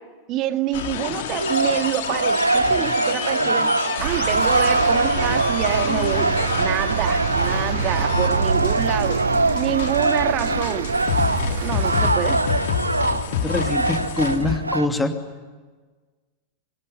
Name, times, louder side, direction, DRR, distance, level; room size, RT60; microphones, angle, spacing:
voice 1, 0.3-3.7 4.0-6.3 6.6-9.2 9.5-10.9 11.6-12.4, right 12 dB, 35° right, 8 dB, 2.0 m, -27 dB
sound 1, 0.7-14.6, left 8 dB, 55° left, 2.4 m, -29 dB
sound 2, 1.4-14.9, right 2 dB, 80° right, 0.9 m, -23 dB
sound 3, 4.0-12.1, right 11 dB, 60° right, 1.0 m, -28 dB
voice 2, 13.4-15.1, left 2 dB, 10° left, 6 dB, 2.7 m, -24 dB
26.0 x 23.0 x 9.8 m, 1.4 s
figure-of-eight pair, 90°, 0 cm